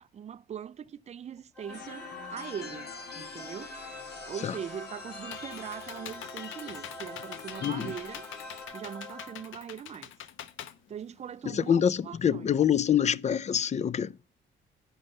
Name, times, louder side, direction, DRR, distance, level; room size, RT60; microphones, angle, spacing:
voice 1, 0.0-3.8 4.3-8.2 8.7-10.1 10.9-11.8 12.1-12.5, right 8 dB, 35° right, 0.4 m, -41 dB
sound 1, 1.5-9.8, left 1 dB, 5° left, 1.5 m, -45 dB
sound 2, 1.7-8.7, left 5 dB, 55° left, 1.9 m, -45 dB
Computer keyboard, 4.8-11.6, left 10 dB, 80° left, 0.8 m, -45 dB
voice 2, 7.6-8.0 11.4-14.2, left 8 dB, 35° left, 0.4 m, -26 dB
8.7 x 5.3 x 6.5 m
cardioid pair, 90°, 20 cm